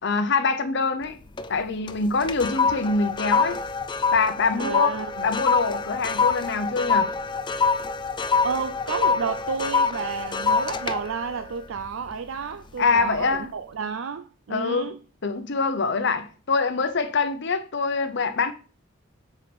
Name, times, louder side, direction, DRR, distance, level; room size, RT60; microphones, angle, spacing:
voice 1, 0.0-1.2 1.5-3.6 4.1-4.9 5.2-7.1 12.8-13.5 14.5-14.9 15.2-18.5, left 4 dB, 60° left, 0.8 m, -24 dB
sound 1, 1.0-1.6 1.9-12.4 12.9-13.2, left 5 dB, 25° left, 0.4 m, -25 dB
voice 2, 4.6-5.3 8.4-15.0, right 6 dB, 75° right, 0.5 m, -31 dB
6.0 x 4.6 x 5.1 m
head